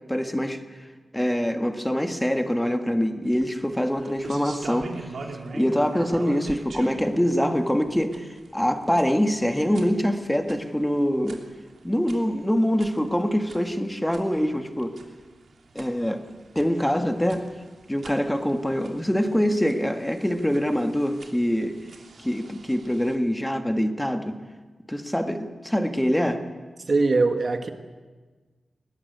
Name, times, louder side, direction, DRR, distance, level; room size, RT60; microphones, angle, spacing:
voice 1, 0.1-0.6 1.1-5.1 5.5-11.4 11.8-14.9 15.7-16.2 16.5-17.5 17.9-21.8 22.2-24.4 24.9-26.4, equal, 5° left, 6 dB, 1.6 m, -24 dB
sound 1, 3.2-23.1, right 3 dB, 70° right, 3.0 m, -44 dB
voice 2, 26.8-27.7, right 3 dB, 40° right, 7 dB, 1.5 m, -22 dB
21.0 x 19.0 x 9.3 m, 1.3 s
wide cardioid pair, 165°, 0 cm